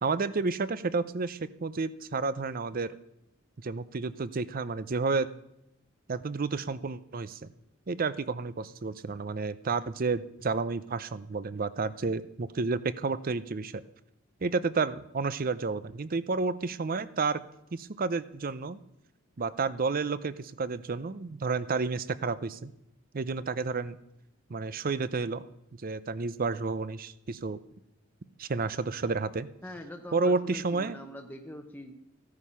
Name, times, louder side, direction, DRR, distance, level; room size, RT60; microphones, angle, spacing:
voice 1, 0.0-3.0 3.6-5.3 6.1-7.5 7.9-13.8 14.4-17.4 17.7-18.8 19.4-22.7 23.1-24.0 24.5-25.5 25.7-27.6 28.4-29.5 30.1-31.0, right 4 dB, 45° right, 15 dB, 0.6 m, -31 dB
voice 2, 29.6-31.9, left 1 dB, 10° left, 3 dB, 0.9 m, -43 dB
15.0 x 9.6 x 5.6 m, 0.85 s
head